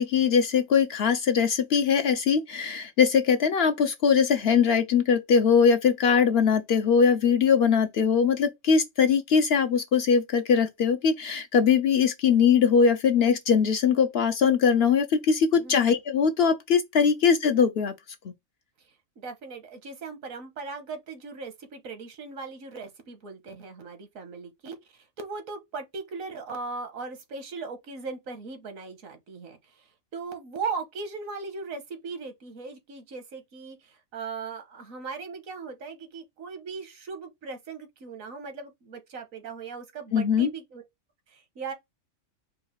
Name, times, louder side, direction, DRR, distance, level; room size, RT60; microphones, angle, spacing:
voice 1, 0.0-17.9 40.1-40.5, left 6 dB, 60° left, 0.7 m, -21 dB
voice 2, 15.5-15.9 19.2-24.8 25.2-29.9 30.1-40.8 41.3-41.7, right 4 dB, 80° right, 1.5 m, -38 dB
4.6 x 2.4 x 4.5 m
omnidirectional pair, 1.4 m